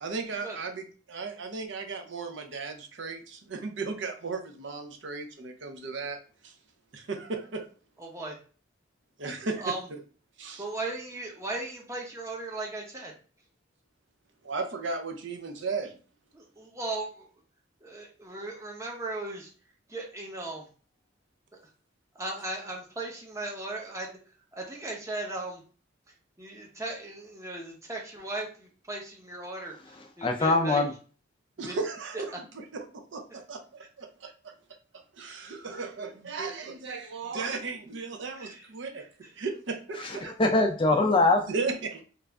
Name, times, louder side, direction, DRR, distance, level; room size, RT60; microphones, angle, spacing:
voice 1, 0.0-6.2 6.4-6.5 6.9-7.7 9.2-10.0 10.4-10.6 14.4-16.0 31.6-32.3 32.7-32.8 33.1-34.5 35.1-39.1 39.4-40.3 41.5-42.0, right 4 dB, 65° right, 5 dB, 0.6 m, -35 dB
voice 2, 8.0-8.4 9.6-9.8 10.6-13.1 16.3-17.3 17.8-19.5 19.9-20.7 22.2-24.1 24.5-25.6 26.4-30.8 31.6-31.8 32.1-32.2 33.3-33.4 38.3-38.7 39.2-39.3, right 2 dB, 15° right, -1 dB, 0.7 m, -37 dB
voice 3, 30.2-30.9 40.0-41.4, left 2 dB, 25° left, 4 dB, 0.4 m, -23 dB
3.2 x 2.5 x 3.4 m, 0.39 s
head